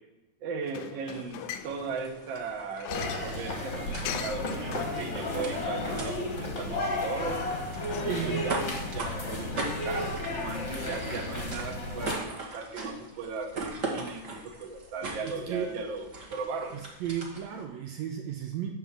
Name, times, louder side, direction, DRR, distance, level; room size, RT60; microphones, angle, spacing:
voice 1, 0.4-7.4 8.0-16.8, right 4 dB, 60° right, 3 dB, 1.3 m, -37 dB
sound 1, 0.6-9.1, left 10 dB, 80° left, 2.0 m, -44 dB
sound 2, 1.1-17.6, right 3 dB, 35° right, 1.3 m, -41 dB
sound 3, 2.9-12.1, left 2 dB, 40° left, 1.1 m, -33 dB
voice 2, 8.1-8.6 15.4-15.7 16.7-18.8, right 9 dB, 80° right, 3 dB, 1.7 m, -34 dB
9.9 x 3.8 x 7.3 m, 0.95 s
omnidirectional pair, 3.6 m